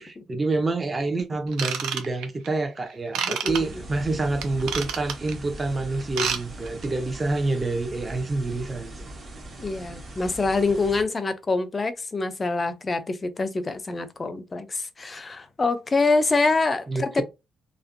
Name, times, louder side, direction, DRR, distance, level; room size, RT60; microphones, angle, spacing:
voice 1, 0.0-9.0 16.9-17.2, right 2 dB, 30° right, 0.6 m, -27 dB
Ratchet pawl / Tools, 1.5-2.5 3.1-3.6 4.4-5.3 6.0-6.4 6.7-6.9 7.4-7.5, right 7 dB, 90° right, 0.4 m, -28 dB
voice 2, 3.2-3.8 9.6-17.2, left 3 dB, 30° left, 0.4 m, -25 dB
sound 1, 3.5-11.0, right 1 dB, 45° right, 1.1 m, -40 dB
2.5 x 2.1 x 2.5 m
cardioid pair, 90°, 0 cm